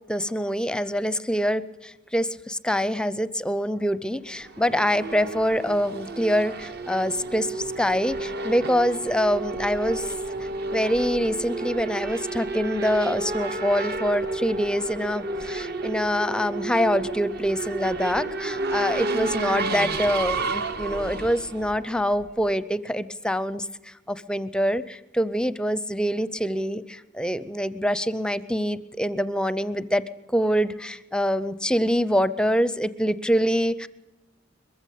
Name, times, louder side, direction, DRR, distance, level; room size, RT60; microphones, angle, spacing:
voice 1, 0.1-10.1 10.7-30.0 30.3-33.9, equal, 5° left, 16 dB, 0.6 m, -25 dB
Race car auto racing / Accelerating revving vroom, 4.3-22.5, right 2 dB, 55° right, 1.2 m, -31 dB
22.0 x 15.0 x 8.4 m, 1.1 s
head